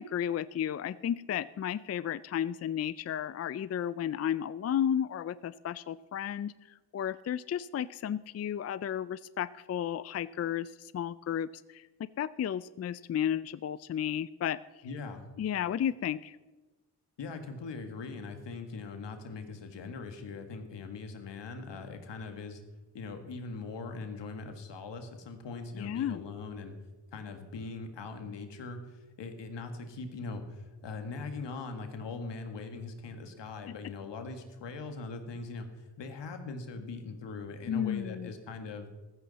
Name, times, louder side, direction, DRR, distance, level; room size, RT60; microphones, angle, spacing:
voice 1, 0.0-6.5 6.9-11.9 12.2-14.6 15.4-16.4 25.8-26.2 33.7-33.8 37.7-38.3, left 9 dB, 40° left, 17 dB, 0.4 m, -33 dB
voice 2, 14.8-15.3 17.2-22.6 22.9-26.8 27.1-38.9, left 4 dB, 80° left, 6 dB, 1.8 m, -41 dB
15.0 x 13.5 x 4.1 m, 1.2 s
cardioid pair, 60°, 42 cm